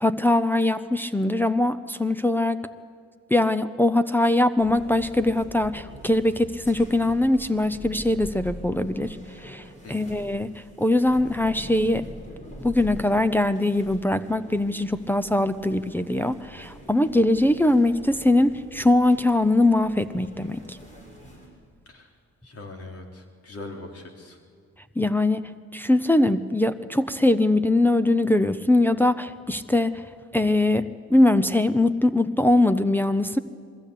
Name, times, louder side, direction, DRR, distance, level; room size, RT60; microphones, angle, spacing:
voice 1, 0.0-2.6 3.3-12.1 12.6-20.8 25.0-30.0 30.3-33.4, left 1 dB, 5° left, 7 dB, 0.7 m, -22 dB
sound 1, 4.6-21.5, equal, 25° left, 6.5 m, -44 dB
voice 2, 9.8-10.2 21.9-22.1 22.4-24.4, left 2 dB, 50° left, 3 dB, 3.6 m, -41 dB
21.5 x 15.5 x 8.3 m, 2.1 s
cardioid pair, 90°, 30 cm